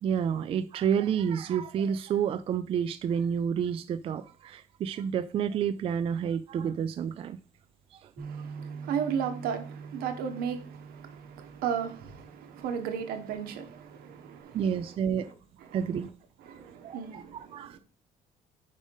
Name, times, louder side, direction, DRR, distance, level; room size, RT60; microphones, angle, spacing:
voice 1, 0.0-7.4 7.9-8.1 14.5-15.3 15.7-16.1 16.8-17.8, right 8 dB, 40° right, 0.4 m, -29 dB
Bass guitar, 8.2-14.4, right 5 dB, 15° right, 0.8 m, -45 dB
voice 2, 8.2-14.9 15.2-15.3 15.6-15.8 16.4-17.8, right 8 dB, 80° right, 1.4 m, -35 dB
5.4 x 4.9 x 5.3 m
cardioid pair, 145°, 15 cm